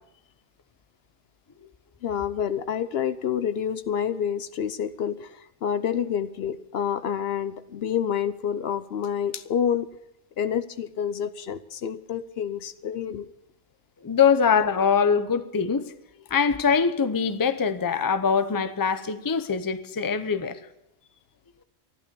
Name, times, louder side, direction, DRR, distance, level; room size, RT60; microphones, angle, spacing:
voice 1, 2.0-9.9 10.4-13.3, left 8 dB, 65° left, 0.9 m, -28 dB
voice 2, 14.0-15.9 16.3-20.6, left 6 dB, 25° left, 0.6 m, -23 dB
14.0 x 11.5 x 6.8 m
omnidirectional pair, 1.1 m